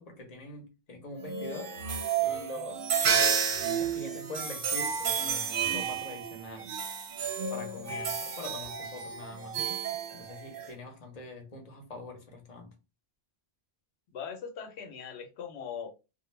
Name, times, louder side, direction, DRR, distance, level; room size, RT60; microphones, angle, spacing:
voice 1, 0.0-1.8 2.2-2.9 3.8-6.7 7.5-9.6 10.1-12.7, left 2 dB, 45° left, 0.7 m, -44 dB
sound 1, 1.2-10.7, right 7 dB, 65° right, 0.7 m, -31 dB
voice 2, 14.1-15.9, left 7 dB, 85° left, 0.9 m, -40 dB
2.2 x 2.1 x 3.1 m
omnidirectional pair, 1.1 m